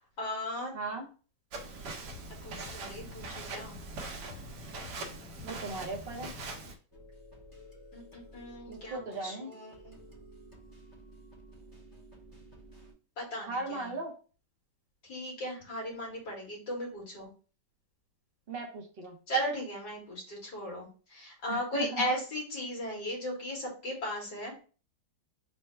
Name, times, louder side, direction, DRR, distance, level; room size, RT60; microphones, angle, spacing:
voice 1, 0.2-0.7 2.4-3.8 7.9-10.0 13.2-13.9 15.0-17.3 19.3-24.5, equal, 60° left, -2 dB, 2.3 m, -36 dB
voice 2, 0.7-1.1 5.4-6.3 8.7-9.5 13.5-14.1 18.5-19.2 21.5-22.0, right 3 dB, 50° right, 1 dB, 0.7 m, -37 dB
Walk footsteps, 1.5-6.7, right 3 dB, 70° right, 1.4 m, -42 dB
sound 1, 2.1-6.6, left 8 dB, 80° left, 1.2 m, -51 dB
sound 2, 6.9-12.9, right 1 dB, 15° left, 0.7 m, -53 dB
4.4 x 2.1 x 4.3 m, 0.37 s
omnidirectional pair, 1.9 m